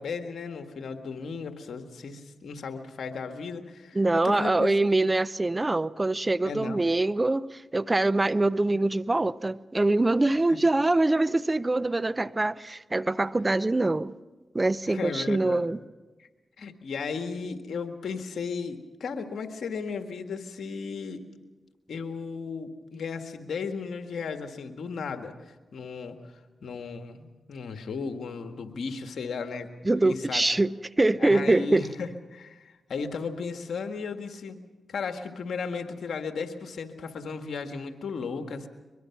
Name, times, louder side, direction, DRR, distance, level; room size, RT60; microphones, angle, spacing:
voice 1, 0.0-4.0 4.2-4.7 6.4-6.9 10.5-10.6 14.9-15.8 16.2-16.3 16.6-21.2 21.9-26.2 26.6-29.7 30.0-30.4 31.2-34.6 34.9-38.7, left 5 dB, 75° left, 6 dB, 1.8 m, -35 dB
voice 2, 3.9-14.1 14.5-15.8 29.8-31.9, right 2 dB, 25° right, 18 dB, 0.6 m, -24 dB
23.0 x 22.5 x 6.0 m, 1.3 s
supercardioid pair, 45°, 0 cm